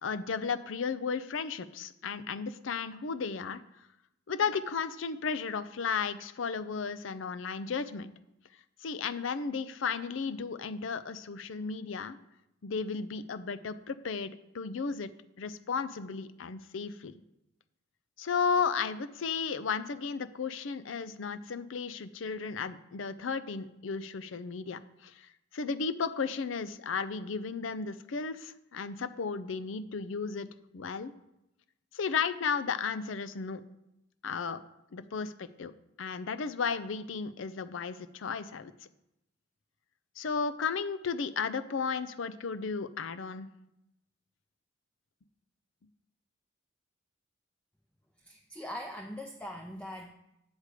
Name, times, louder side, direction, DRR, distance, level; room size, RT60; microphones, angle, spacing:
voice 1, 0.0-3.6 4.3-8.1 8.8-12.2 12.6-15.1 15.4-17.1 18.2-30.5 30.7-31.1 31.9-33.6 34.2-34.6 34.9-35.7 36.0-38.7 40.2-43.5, left 5 dB, 75° left, 13 dB, 0.5 m, -34 dB
voice 2, 48.3-50.1, equal, 5° left, 2 dB, 0.5 m, -41 dB
8.1 x 4.9 x 6.6 m, 0.87 s
head